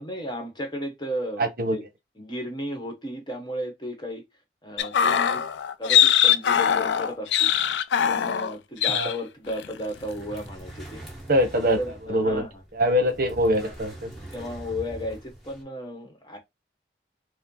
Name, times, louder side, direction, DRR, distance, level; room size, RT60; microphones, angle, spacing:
voice 1, 0.0-1.8 2.2-4.2 4.6-5.4 5.8-7.5 8.1-11.0 11.8-12.5 14.3-16.4, equal, 25° left, 1.1 m, -34 dB
voice 2, 1.4-1.8 8.9-9.1 11.3-11.8 12.1-12.4 12.7-14.1, equal, 55° right, 0.8 m, -23 dB
sound 1, 4.8-8.6 8.8-9.2 9.5-9.7, left 9 dB, 85° left, 0.4 m, -21 dB
sound 2, 9.9-15.6, right 1 dB, ahead, 1.6 m, -43 dB
4.3 x 2.1 x 3.8 m
head